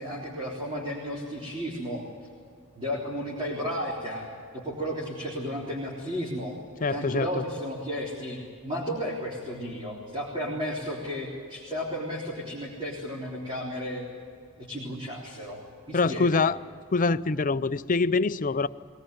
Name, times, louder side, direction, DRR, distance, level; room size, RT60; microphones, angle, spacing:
voice 1, 0.0-2.0 2.8-4.3 4.5-6.5 6.9-14.0 14.6-15.6 15.9-16.4, equal, 25° right, -4 dB, 3.7 m, -33 dB
voice 2, 6.8-7.3 15.9-16.6 16.9-18.7, left 4 dB, 35° left, 13 dB, 0.5 m, -24 dB
22.5 x 19.0 x 9.3 m, 2.3 s
head